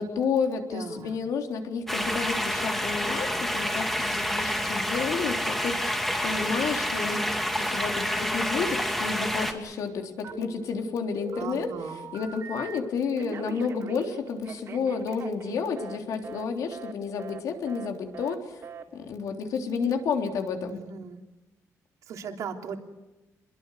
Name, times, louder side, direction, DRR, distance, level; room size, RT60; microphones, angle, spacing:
voice 1, 0.0-7.2 7.6-18.6 18.9-20.8, left 5 dB, 80° left, 3 dB, 3.6 m, -31 dB
voice 2, 0.7-1.2 11.3-12.0 20.6-21.2 22.1-22.8, right 6 dB, 75° right, 3 dB, 3.2 m, -38 dB
sound 1, 1.9-9.5, equal, 5° left, 2.5 m, -28 dB
Telephone, 10.2-10.8 11.2-12.8 13.2-16.0 16.2-16.5 16.7-16.9 17.2-17.4 17.7-17.9 18.1-18.4 18.6-18.8, right 6 dB, 50° right, 3.4 m, -41 dB
28.0 x 22.0 x 6.7 m, 1.1 s
cardioid pair, 170°, 6 cm